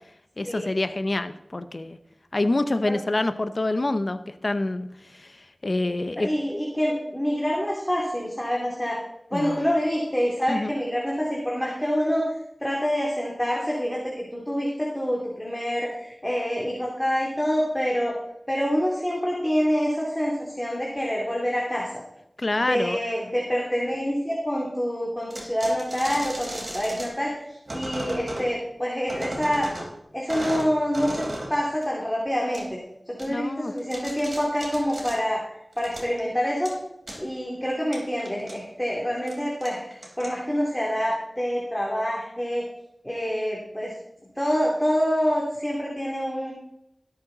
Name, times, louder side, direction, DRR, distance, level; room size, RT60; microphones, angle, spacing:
voice 1, 0.4-2.0 2.3-5.4 5.6-6.3 9.3-9.6 10.5-10.7 22.4-23.0 33.3-33.7, left 2 dB, 55° left, 10 dB, 0.8 m, -26 dB
voice 2, 6.2-9.0 9.3-12.3 12.6-18.1 18.5-21.9 22.6-27.4 27.7-29.7 30.1-31.2 31.5-32.8 33.1-35.4 35.8-36.7 37.2-42.7 43.0-43.9 44.4-46.5, equal, 10° left, -3 dB, 2.8 m, -26 dB
sound 1, 25.3-27.1 27.7-28.5 29.1-29.9 30.3-31.5 31.8-31.9 32.5-32.6 33.2-33.3 33.7-35.2 35.7-36.2 36.7-36.8 37.1-37.2 37.9-38.5 39.2-39.3 39.6-40.6, right 1 dB, 65° right, 4.1 m, -35 dB
17.5 x 8.1 x 4.0 m, 0.83 s
wide cardioid pair, 50°, 0 cm